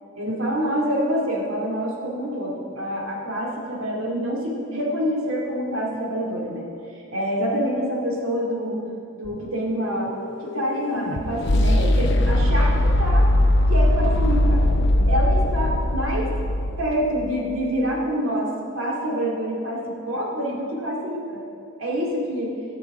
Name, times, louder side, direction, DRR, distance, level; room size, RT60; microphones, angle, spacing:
voice 1, 0.2-6.6 7.1-8.8 9.1-10.1 10.4-13.2 13.7-14.6 15.1-16.3 16.8-21.4 21.8-22.5, equal, 80° right, -3 dB, 2.3 m, -26 dB
sound 1, 9.3-17.4, left 1 dB, 60° left, 0.7 m, -20 dB
14.5 x 6.6 x 4.8 m, 2.5 s
head